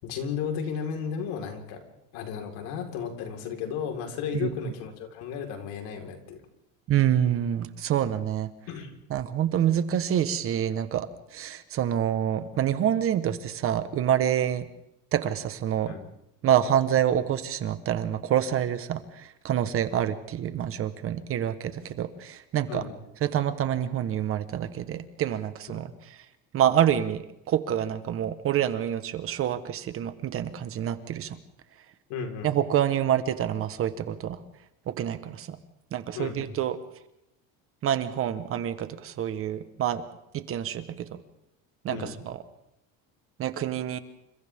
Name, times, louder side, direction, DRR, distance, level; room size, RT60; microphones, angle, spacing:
voice 1, 0.0-6.4 8.7-9.0 15.9-16.1 22.7-22.9 25.7-25.8 32.1-32.5 36.1-36.5 41.9-42.2, left 7 dB, 70° left, 3 dB, 4.6 m, -34 dB
voice 2, 6.9-8.5 9.1-14.7 15.1-15.9 16.4-22.8 23.2-25.9 26.5-31.4 32.4-34.4 34.9-35.6 35.9-36.8 37.8-40.0 40.3-41.1 41.8-42.4 43.4-44.0, right 10 dB, 35° right, 11 dB, 1.3 m, -27 dB
29.5 x 26.5 x 3.7 m, 0.85 s
cardioid pair, 155°, 36 cm